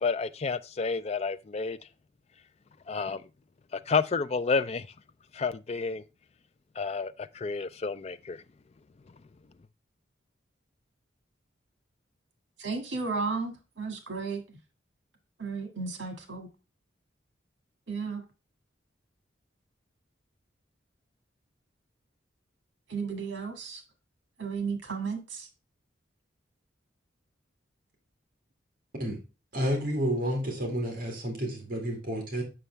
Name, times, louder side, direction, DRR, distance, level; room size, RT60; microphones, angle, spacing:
voice 1, 0.0-1.8 2.9-3.2 3.7-4.9 5.3-6.0 6.8-8.4, left 4 dB, 35° left, 0.4 m, -30 dB
voice 2, 12.6-14.6 15.4-16.5 17.9-18.2 22.9-23.8 24.4-25.5, right 4 dB, 75° right, 1.7 m, -34 dB
voice 3, 29.5-32.4, equal, 50° right, 2.0 m, -30 dB
6.9 x 6.1 x 3.3 m
head